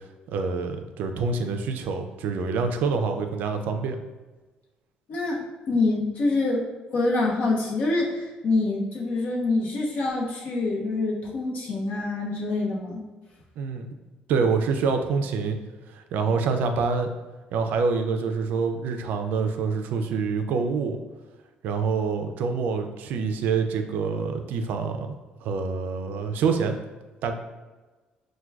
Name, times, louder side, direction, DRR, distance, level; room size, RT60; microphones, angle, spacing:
voice 1, 0.3-4.0 13.6-14.0 14.3-15.6 15.9-17.1 17.5-21.0 21.6-25.1 25.4-26.8 27.2-27.3, right 5 dB, 70° right, 6 dB, 0.3 m, -26 dB
voice 2, 5.1-6.7 6.9-13.0, left 2 dB, 60° left, -2 dB, 0.8 m, -26 dB
4.5 x 2.2 x 2.2 m, 1.2 s
cardioid pair, 130°, 3 cm